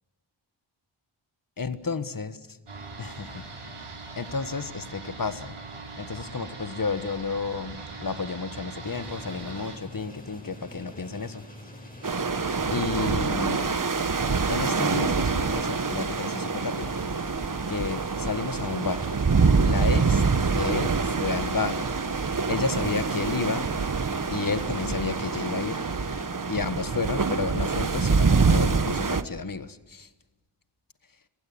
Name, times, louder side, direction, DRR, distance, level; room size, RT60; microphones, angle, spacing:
voice 1, 1.6-2.6 3.0-3.4 4.2-5.6 6.0-11.4 12.7-13.7 14.5-16.9 17.7-19.1 19.6-20.2 20.5-21.8 22.5-23.7 24.3-25.8 26.5-30.1, left 4 dB, 40° left, 12 dB, 1.5 m, -31 dB
sound 1, 2.7-9.8, right 3 dB, 75° right, 4.7 m, -41 dB
sound 2, 8.8-26.3, equal, 15° left, 6.5 m, -45 dB
sound 3, 12.0-29.2, right 4 dB, 40° right, 1.2 m, -25 dB
25.5 x 16.0 x 8.5 m, 1.2 s
cardioid pair, 50°, 50 cm